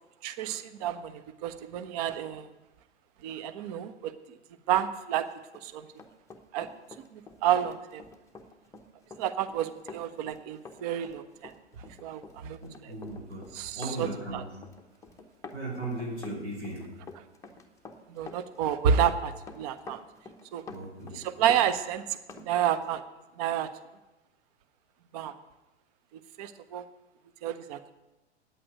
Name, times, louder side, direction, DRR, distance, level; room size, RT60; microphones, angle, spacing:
voice 1, 0.2-2.5 3.2-4.4 4.7-5.3 5.6-5.9 6.5-6.7 7.1-8.0 9.2-11.5 11.9-12.6 13.5-14.1 14.3-14.4 18.1-20.0 20.5-20.6 21.1-23.0 23.4-23.7 25.1-25.3 26.4-26.8 27.4-27.9, right 9 dB, 35° right, 11 dB, 0.7 m, -30 dB
Run, 5.4-22.5 22.8-23.0, left 4 dB, 10° left, 0.9 m, -48 dB
voice 2, 12.6-14.6 15.5-16.9 20.7-21.2, right 1 dB, 75° right, -3 dB, 5.7 m, -37 dB
9.2 x 8.6 x 9.4 m, 1.0 s
figure-of-eight pair, 115°, 34 cm